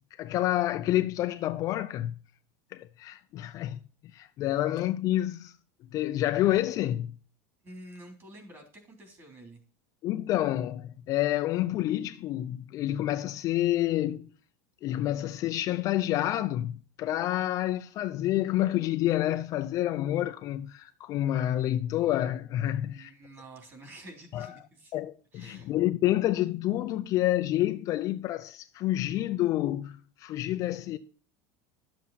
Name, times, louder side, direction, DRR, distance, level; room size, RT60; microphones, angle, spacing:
voice 1, 0.2-2.2 2.7-3.8 4.1-5.5 5.9-7.1 10.0-14.3 14.8-23.1 24.3-24.5 24.9-31.0, left 14 dB, 35° left, 0.5 m, -28 dB
voice 2, 7.6-9.6 22.9-24.9 25.3-25.7, right 1 dB, 25° right, 3.3 m, -49 dB
12.5 x 7.5 x 4.2 m
supercardioid pair, 160°, 10 cm